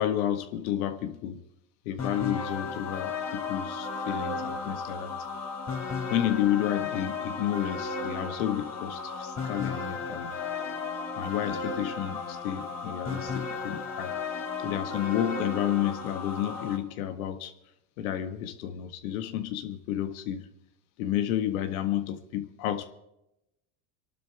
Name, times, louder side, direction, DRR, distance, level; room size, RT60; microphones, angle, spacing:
voice 1, 0.0-1.4 1.8-5.1 6.1-10.3 11.2-14.1 14.6-17.5 18.0-20.5 21.0-22.9, left 11 dB, 80° left, 1.7 m, -31 dB
sound 1, 2.0-16.8, left 4 dB, 40° left, 3.8 m, -34 dB
26.5 x 12.0 x 3.5 m
supercardioid pair, 100°, 42 cm